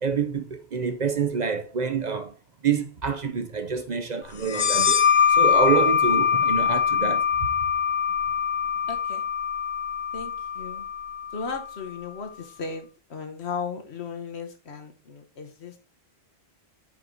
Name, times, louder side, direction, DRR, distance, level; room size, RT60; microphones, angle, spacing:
voice 1, 0.0-2.3 2.6-5.0 5.3-7.3, right 6 dB, 45° right, 0.7 m, -27 dB
sound 1, 4.4-11.8, left 7 dB, 55° left, 0.7 m, -23 dB
voice 2, 8.9-9.3 10.1-10.9 11.3-15.8, left 5 dB, 80° left, 1.4 m, -36 dB
5.6 x 4.7 x 3.9 m
omnidirectional pair, 1.1 m